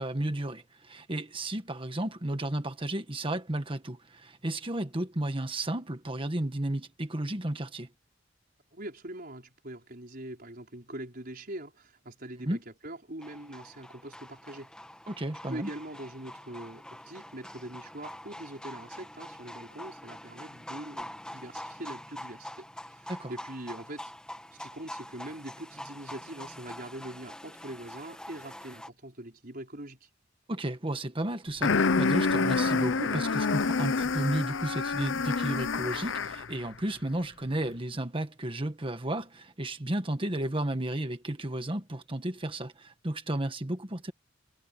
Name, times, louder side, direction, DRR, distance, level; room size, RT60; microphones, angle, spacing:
voice 1, 0.0-7.9 12.4-12.6 15.1-15.7 23.1-23.3 30.5-44.1, right 1 dB, 30° right, 1.5 m, -33 dB
voice 2, 8.7-14.7 15.5-24.1 24.5-30.1, right 1 dB, 50° right, 5.3 m, -43 dB
sound 1, 13.2-28.9, left 1 dB, 5° left, 2.1 m, -45 dB
sound 2, 31.6-36.5, left 4 dB, 85° left, 0.7 m, -27 dB
head